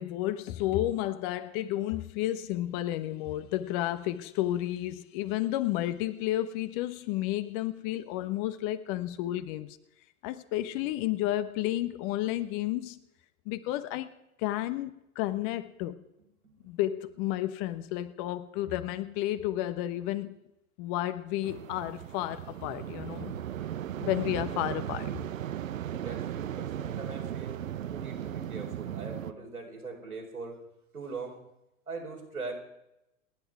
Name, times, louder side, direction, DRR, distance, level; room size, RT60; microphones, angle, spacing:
voice 1, 0.0-9.8 10.2-13.0 13.5-14.1 14.4-16.0 16.6-20.4 20.8-23.3 24.0-25.1, left 14 dB, 35° left, 1.2 m, -31 dB
sound 1, 21.4-29.3, right 11 dB, 65° right, 1.0 m, -37 dB
voice 2, 25.9-30.6 30.9-31.4 31.9-32.5, right 3 dB, 85° right, 4.6 m, -41 dB
29.0 x 10.5 x 4.8 m
figure-of-eight pair, 100°, 43 cm